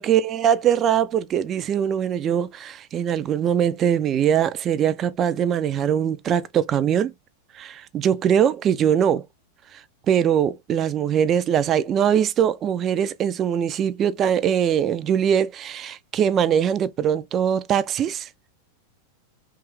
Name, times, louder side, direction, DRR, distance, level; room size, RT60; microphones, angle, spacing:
voice 1, 0.0-7.1 7.5-9.2 10.1-18.3, right 9 dB, 30° right, 0.3 m, -22 dB
2.9 x 2.3 x 3.1 m
figure-of-eight pair, 90°, 0 cm